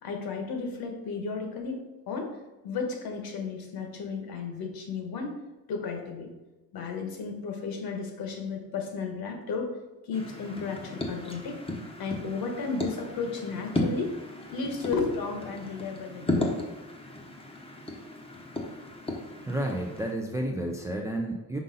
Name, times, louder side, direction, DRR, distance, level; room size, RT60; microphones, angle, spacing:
voice 1, 0.0-2.4 2.6-5.4 5.7-6.3 6.7-9.7 10.0-11.6 12.0-14.2 14.5-16.5, left 4 dB, 60° left, 3 dB, 1.3 m, -33 dB
sound 1, 10.1-20.1, left 2 dB, 15° left, 0.8 m, -35 dB
voice 2, 19.5-21.6, right 1 dB, 10° right, 1 dB, 0.4 m, -31 dB
5.5 x 5.1 x 3.9 m, 1.1 s
cardioid pair, 160°, 41 cm